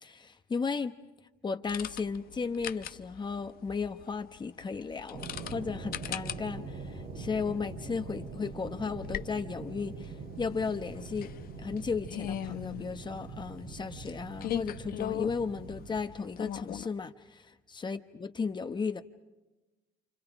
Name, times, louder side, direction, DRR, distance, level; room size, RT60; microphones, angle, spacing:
voice 1, 0.0-0.9 1.4-11.3 11.6-19.0, left 5 dB, 25° left, 1.0 m, -35 dB
sound 1, 1.7-16.9, left 11 dB, 60° left, 0.9 m, -41 dB
sound 2, 5.1-16.0, right 4 dB, 85° right, 3.6 m, -43 dB
29.5 x 27.5 x 5.0 m
cardioid pair, 110°, 17 cm